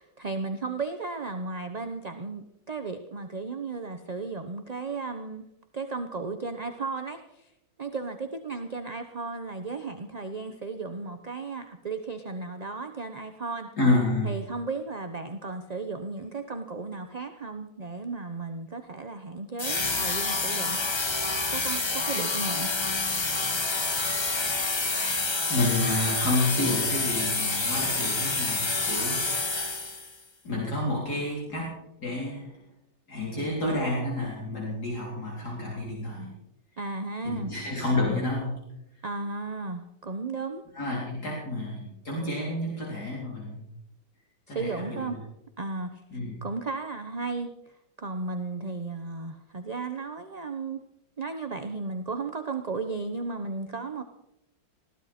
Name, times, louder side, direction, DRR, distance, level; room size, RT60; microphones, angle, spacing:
voice 1, 0.0-5.4 5.7-7.5 7.8-13.7 14.2-20.8 21.5-22.7 36.8-37.5 39.0-40.6 44.5-45.2 45.6-46.0 46.4-50.8 51.2-54.0, right 3 dB, 35° right, 6 dB, 0.7 m, -35 dB
voice 2, 13.8-14.4 25.5-29.9 30.4-32.6 33.1-36.4 37.2-38.6 40.7-43.7 44.5-45.1 46.1-46.3, left 2 dB, 55° left, -4 dB, 4.3 m, -29 dB
sound 1, 19.6-30.2, left 3 dB, 30° left, 0.4 m, -28 dB
20.5 x 16.0 x 4.3 m, 0.84 s
omnidirectional pair, 2.0 m